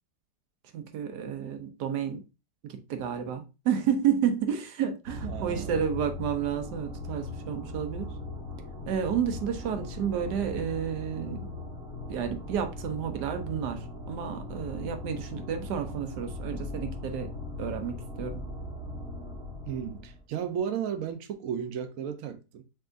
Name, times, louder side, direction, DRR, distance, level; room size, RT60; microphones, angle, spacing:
voice 1, 0.7-2.2 2.6-8.1 8.9-11.5 12.1-17.3 17.6-18.5, right 8 dB, 85° right, 1.3 m, -31 dB
sound 1, 5.0-20.2, left 2 dB, 45° right, 1.7 m, -39 dB
voice 2, 5.3-5.8 19.7-22.6, right 8 dB, 65° right, 0.9 m, -34 dB
4.7 x 3.7 x 2.5 m
omnidirectional pair, 1.7 m